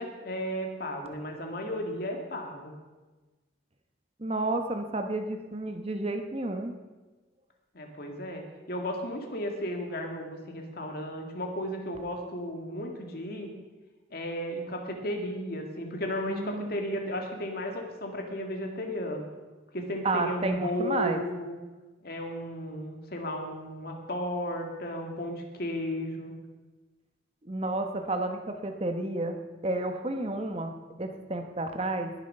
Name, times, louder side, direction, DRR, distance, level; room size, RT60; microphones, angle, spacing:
voice 1, 0.0-2.7 7.7-13.5 14.1-19.3 19.7-21.6 22.0-26.3, equal, 55° left, 3 dB, 2.0 m, -34 dB
voice 2, 4.2-6.7 16.3-16.8 20.0-21.2 27.5-29.4 29.6-30.7 31.0-32.1, right 2 dB, 35° right, 6 dB, 1.0 m, -31 dB
20.0 x 7.3 x 5.5 m, 1.2 s
head